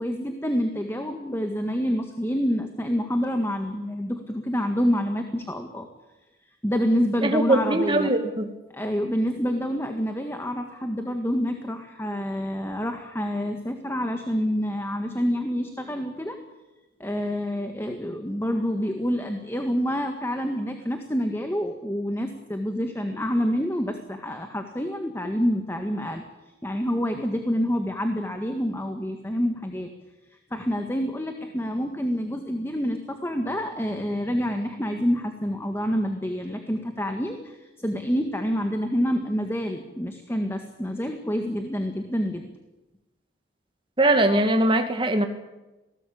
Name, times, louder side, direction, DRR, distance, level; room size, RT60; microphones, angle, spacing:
voice 1, 0.0-5.9 6.6-8.1 8.7-16.4 17.0-26.2 26.6-29.9 30.5-42.4, equal, 15° left, 5 dB, 1.8 m, -27 dB
voice 2, 7.2-8.5 44.0-45.3, right 1 dB, 25° right, 6 dB, 2.2 m, -21 dB
27.0 x 18.5 x 8.7 m, 1.1 s
head